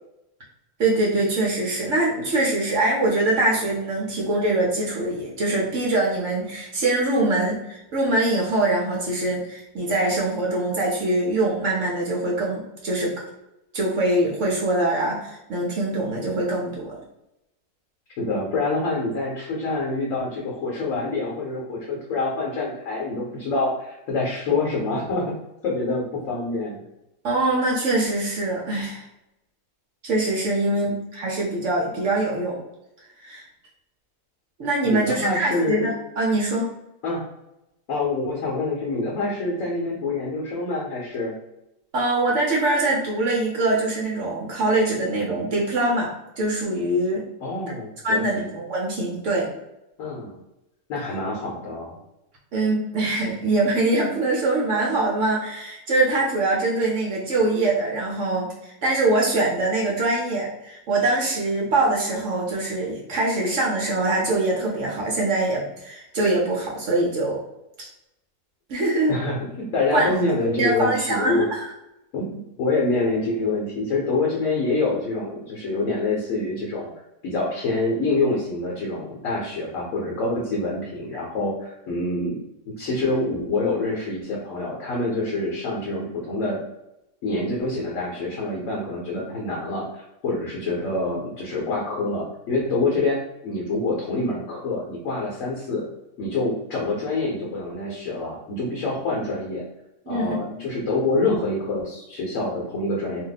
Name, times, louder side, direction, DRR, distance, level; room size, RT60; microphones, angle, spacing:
voice 1, 0.8-13.1 13.7-17.0 27.2-29.0 30.0-32.6 33.2-33.4 34.6-36.7 41.9-47.2 48.0-49.5 52.5-67.4 68.7-69.2 69.9-71.7 100.1-100.6, right 2 dB, 60° right, -2 dB, 0.9 m, -23 dB
voice 2, 18.2-25.3 25.6-26.8 30.8-30.9 34.8-35.9 37.0-37.2 37.9-41.3 47.4-48.5 50.0-50.4 50.9-52.0 69.1-71.4 72.1-76.9 77.2-82.4 82.8-86.6 87.2-95.9 96.2-99.6 100.1-103.2, left 2 dB, 65° left, -3 dB, 1.1 m, -26 dB
2.8 x 2.1 x 3.9 m, 0.89 s
omnidirectional pair, 1.7 m